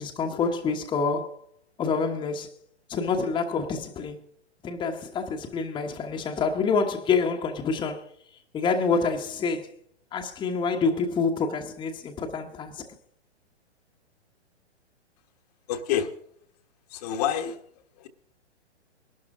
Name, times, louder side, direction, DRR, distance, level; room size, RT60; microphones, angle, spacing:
voice 1, 0.0-1.4 1.8-2.5 2.9-4.2 4.6-8.0 8.5-9.7 10.1-12.8, left 5 dB, 15° left, 1.2 m, -27 dB
voice 2, 15.7-16.1 16.9-17.6 18.0-18.1, left 9 dB, 35° left, 1.4 m, -27 dB
21.0 x 12.0 x 3.7 m
figure-of-eight pair, 115°, 34 cm